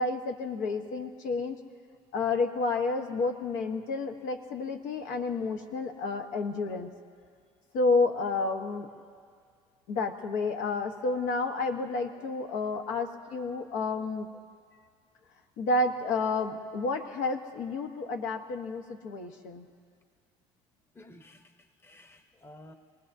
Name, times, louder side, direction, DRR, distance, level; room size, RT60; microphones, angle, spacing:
voice 1, 0.0-1.6 2.1-6.9 7.7-8.9 9.9-14.3 15.6-19.7, left 3 dB, 80° left, 1.3 m, -30 dB
voice 2, 20.9-22.7, left 1 dB, 20° left, 0.9 m, -53 dB
26.0 x 19.0 x 2.7 m
cardioid pair, 105°, 13 cm